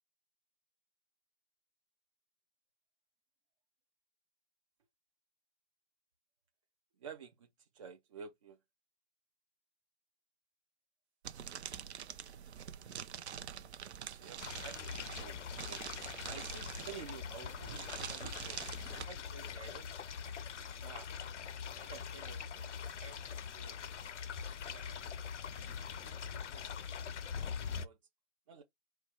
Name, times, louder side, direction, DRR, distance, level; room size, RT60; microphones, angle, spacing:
voice 1, 7.0-7.5 7.7-8.6 14.1-15.9 16.3-18.6 18.9-20.0 20.8-21.1 21.7-22.7 23.0-23.8 24.3-25.1 25.5-26.7 27.4-28.0 28.5-28.6, right 6 dB, 30° right, 0.4 m, -52 dB
sound 1, 11.2-19.1, right 8 dB, 60° right, 0.7 m, -46 dB
sound 2, 14.4-27.9, left 7 dB, 70° left, 0.7 m, -43 dB
4.3 x 2.3 x 4.5 m
figure-of-eight pair, 130°, 38 cm